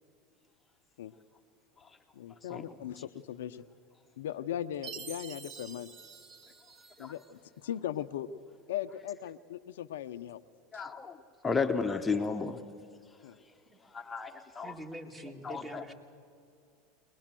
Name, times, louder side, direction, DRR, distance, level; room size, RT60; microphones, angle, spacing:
voice 1, 2.1-3.6 4.2-5.9 7.0-8.3 8.7-10.4 10.7-10.8 13.2-13.4, left 11 dB, 80° left, 10 dB, 0.6 m, -38 dB
Chime, 4.8-7.3, right 7 dB, 40° right, 1.3 m, -47 dB
voice 2, 10.7-11.2 11.4-12.6 13.8-14.7 15.4-15.8, left 4 dB, 15° left, 5 dB, 1.0 m, -33 dB
voice 3, 14.6-15.9, right 1 dB, 15° right, 4 dB, 2.5 m, -45 dB
22.5 x 20.5 x 7.6 m, 2.4 s
hypercardioid pair, 95°, 0 cm